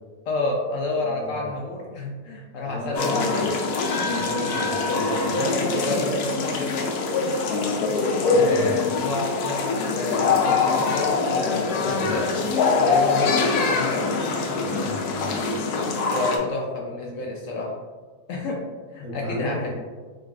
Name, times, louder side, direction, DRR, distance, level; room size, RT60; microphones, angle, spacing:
voice 1, 0.3-3.5 3.9-4.3 5.2-6.9 8.4-12.4 12.8-14.1 16.1-17.7 18.3-18.6 18.9-19.7, left 2 dB, 70° left, -1 dB, 0.8 m, -29 dB
voice 2, 1.0-1.5 2.6-3.6 4.0-5.3 8.2-8.7 11.8-12.2 14.6-15.4 19.0-19.7, equal, 70° right, -5 dB, 1.6 m, -35 dB
sound 1, 2.9-16.4, left 4 dB, 85° left, 1.1 m, -23 dB
3.8 x 3.4 x 2.4 m, 1.4 s
omnidirectional pair, 1.6 m